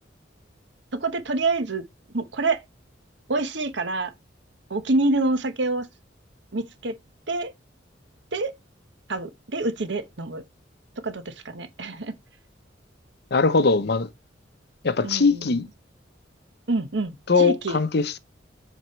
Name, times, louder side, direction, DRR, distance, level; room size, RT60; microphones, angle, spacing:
voice 1, 1.0-1.8 2.1-2.6 3.3-4.1 4.7-5.9 6.5-7.0 7.3-7.5 8.3-8.5 9.1-10.4 11.0-12.1 15.0-15.6 16.7-17.8, right 2 dB, 70° right, 1.1 m, -26 dB
voice 2, 13.3-14.1 14.8-15.7 17.3-18.2, left 4 dB, 55° left, 0.7 m, -21 dB
7.7 x 5.1 x 3.1 m
head